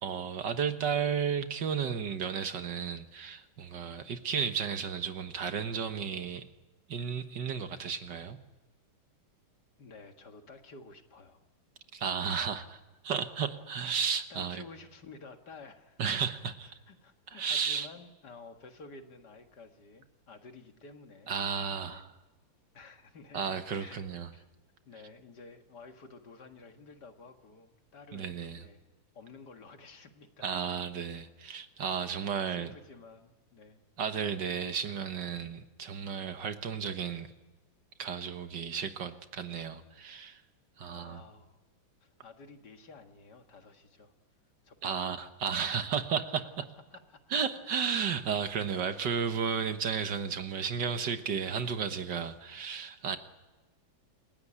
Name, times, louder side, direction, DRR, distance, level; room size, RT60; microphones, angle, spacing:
voice 1, 0.0-6.5 6.9-8.4 11.9-12.6 13.0-14.6 16.0-16.8 17.3-17.9 21.3-22.1 23.3-24.3 28.1-28.6 30.4-32.7 34.0-37.3 38.0-40.4 40.8-41.2 44.8-46.4 47.3-53.2, right 7 dB, 60° right, 9 dB, 1.8 m, -33 dB
voice 2, 9.8-11.4 12.2-12.6 14.3-16.0 16.6-21.4 21.8-22.1 22.7-24.1 24.3-24.5 24.9-28.9 29.1-30.6 32.0-33.8 40.9-41.6 42.0-44.1 44.6-44.9 45.7-46.0 46.9-47.2, left 3 dB, 55° left, 6 dB, 2.2 m, -52 dB
27.5 x 16.5 x 10.0 m, 1.2 s
omnidirectional pair, 2.2 m